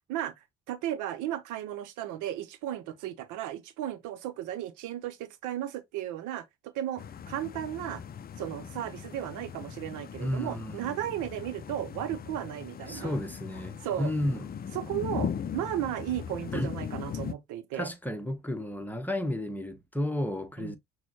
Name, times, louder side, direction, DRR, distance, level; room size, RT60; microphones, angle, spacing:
voice 1, 0.7-8.0 8.4-13.2 13.8-14.1 14.7-17.9 20.6-20.8, right 12 dB, 65° right, 0.7 m, -35 dB
sound 1, 7.0-17.3, left 8 dB, 30° left, 0.5 m, -39 dB
voice 2, 10.2-11.0 12.9-14.5 16.5-16.7 17.7-20.8, left 1 dB, 5° left, 1.0 m, -32 dB
6.1 x 2.2 x 2.9 m
hypercardioid pair, 55°, 33 cm